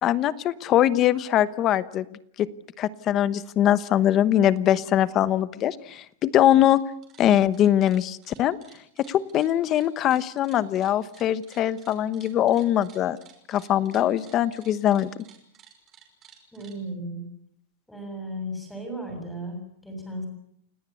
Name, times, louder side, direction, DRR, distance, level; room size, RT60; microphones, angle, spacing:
voice 1, 0.0-2.0 2.4-2.5 2.8-6.8 7.2-8.6 9.1-13.2 13.5-15.1, left 11 dB, 25° left, 16 dB, 1.0 m, -22 dB
sound 1, 6.5-6.8 7.0-16.8, right 9 dB, 25° right, 5.9 m, -54 dB
voice 2, 16.5-17.2 17.9-20.3, right 1 dB, ahead, 4 dB, 7.4 m, -35 dB
29.0 x 18.0 x 8.4 m, 0.71 s
supercardioid pair, 165°, 0 cm